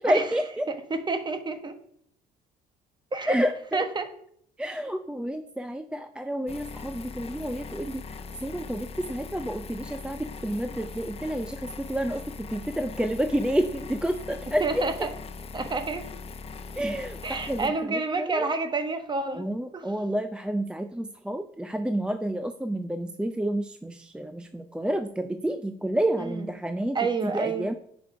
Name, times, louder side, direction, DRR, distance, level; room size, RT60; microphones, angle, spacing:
voice 1, 0.0-0.7 3.3-3.5 4.6-14.9 16.8-18.5 19.3-27.0 27.2-27.7, right 1 dB, 5° right, 8 dB, 0.5 m, -29 dB
voice 2, 0.7-1.7 3.1-3.4 3.7-4.1 14.6-15.1 15.5-16.1 17.2-19.5 19.7-19.9 26.2-26.5 26.9-27.7, right 3 dB, 25° right, 8 dB, 1.2 m, -29 dB
sound 1, 6.5-17.7, left 4 dB, 35° left, 0.7 m, -40 dB
9.4 x 5.2 x 5.0 m, 0.68 s
cardioid pair, 110°, 17 cm